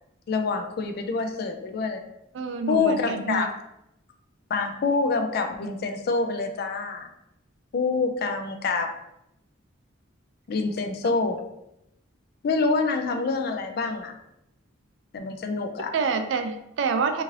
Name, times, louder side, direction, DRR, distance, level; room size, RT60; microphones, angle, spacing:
voice 1, 0.3-2.0 2.7-3.5 4.5-7.1 7.7-8.9 10.5-11.4 12.4-14.1 15.1-15.9, left 4 dB, 50° left, 6 dB, 0.3 m, -26 dB
voice 2, 2.3-3.5 15.9-17.2, right 5 dB, 65° right, 7 dB, 0.3 m, -27 dB
2.6 x 2.5 x 3.1 m, 0.84 s
head